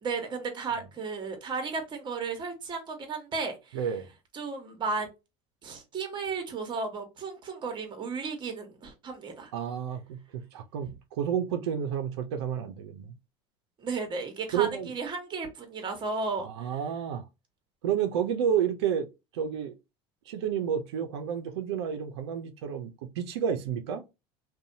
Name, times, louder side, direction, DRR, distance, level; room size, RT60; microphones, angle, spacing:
voice 1, 0.0-3.8 4.3-5.1 5.6-9.5 13.8-16.7, right 4 dB, 35° right, 1.1 m, -34 dB
voice 2, 3.7-4.1 9.5-13.1 14.5-14.9 16.4-17.2 17.8-19.1 19.3-19.7 20.3-24.0, right 8 dB, 90° right, 0.5 m, -30 dB
2.6 x 2.2 x 2.6 m
supercardioid pair, 95°, 14 cm